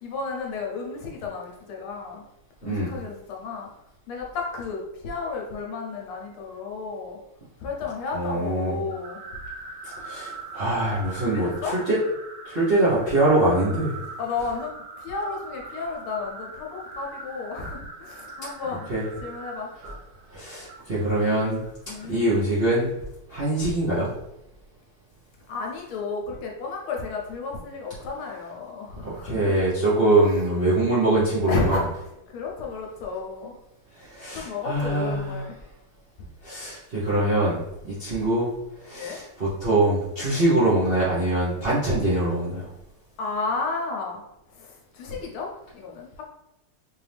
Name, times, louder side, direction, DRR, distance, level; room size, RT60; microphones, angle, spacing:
voice 1, 0.0-2.2 2.6-3.7 4.1-7.2 7.6-9.2 11.2-11.8 14.2-18.9 19.2-19.7 21.9-22.2 25.5-29.6 31.5-31.9 32.3-33.6 34.3-35.5 38.9-39.2 43.2-44.2 44.5-46.2, left 4 dB, 75° left, -1 dB, 1.6 m, -32 dB
voice 2, 8.1-8.8 9.8-12.0 12.4-14.0 18.9-19.0 20.3-21.6 22.1-22.9 23.3-24.1 29.0-31.8 33.9-35.4 36.4-38.5 38.8-42.7, right 2 dB, 45° right, -9 dB, 0.8 m, -23 dB
sound 1, 8.9-22.3, right 3 dB, 85° right, 1.6 m, -41 dB
4.4 x 2.7 x 3.4 m, 0.87 s
omnidirectional pair, 2.4 m